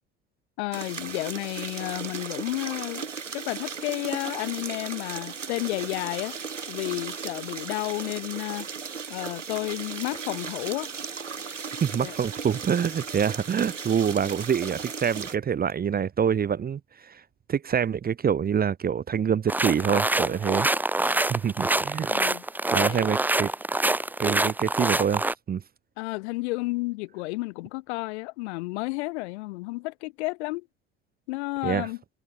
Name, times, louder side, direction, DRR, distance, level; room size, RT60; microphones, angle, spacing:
voice 1, 0.6-3.1 3.3-6.4 6.7-8.7 9.1-10.9 12.0-12.2 22.1-22.4 22.8-23.1 26.0-30.7 31.3-32.0, left 23 dB, 65° left, 3.7 m, -31 dB
sound 1, 0.7-15.4, right 6 dB, 85° right, 2.5 m, -36 dB
voice 2, 11.8-17.2 17.5-20.7 21.3-22.1 22.7-23.5 24.2-25.2 25.5-25.6 31.6-31.9, right 7 dB, 25° right, 1.0 m, -26 dB
sound 2, 19.5-25.3, right 2 dB, 5° right, 0.7 m, -25 dB
figure-of-eight pair, 65°, 36 cm